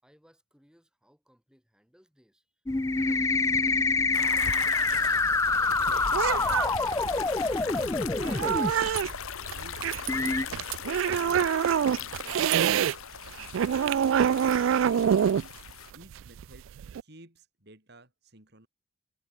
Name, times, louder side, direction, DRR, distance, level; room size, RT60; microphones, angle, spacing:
voice 1, 0.0-3.8 4.4-4.6 4.9-6.6 11.0-11.2 13.3-13.7, equal, 5° right, 6.7 m, -64 dB
sound 1, 2.7-8.7 9.5-9.6 10.1-10.4, left 3 dB, 15° left, 0.3 m, -26 dB
sound 2, 4.1-15.9, left 8 dB, 80° left, 0.8 m, -40 dB
sound 3, 4.9-13.0 13.3-17.0, right 8 dB, 70° right, 0.3 m, -27 dB
voice 2, 7.2-7.7 8.3-9.1 9.4-9.9 10.2-11.6 14.5-15.5 15.9-16.7 17.0-18.7, right 1 dB, 50° right, 6.3 m, -54 dB
head